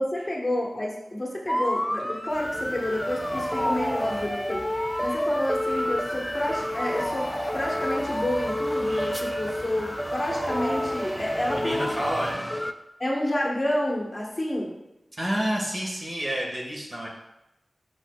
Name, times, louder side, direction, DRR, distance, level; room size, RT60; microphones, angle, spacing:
voice 1, 0.0-4.7 5.0-12.0 13.0-14.7, left 1 dB, 25° left, -3 dB, 1.3 m, -29 dB
sound 1, 1.5-12.7, equal, 5° left, 0.3 m, -29 dB
sound 2, 2.3-12.3, equal, 75° right, 1.5 m, -40 dB
voice 2, 11.5-12.4 15.2-17.1, equal, 40° right, -3 dB, 1.6 m, -29 dB
7.3 x 6.1 x 2.4 m, 0.91 s
wide cardioid pair, 90°, 0 cm